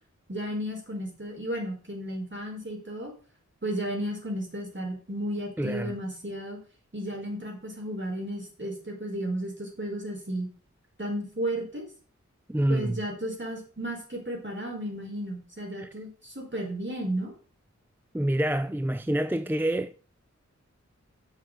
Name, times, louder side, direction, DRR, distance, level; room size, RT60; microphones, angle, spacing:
voice 1, 0.3-3.1 3.6-6.6 6.9-10.5 11.0-11.8 12.7-17.3, right 1 dB, 40° right, 4.5 m, -33 dB
voice 2, 5.6-5.9 12.5-13.0 15.8-15.9 18.1-20.0, right 1 dB, 5° right, 0.5 m, -27 dB
7.2 x 6.6 x 6.6 m
wide cardioid pair, 50°, 30 cm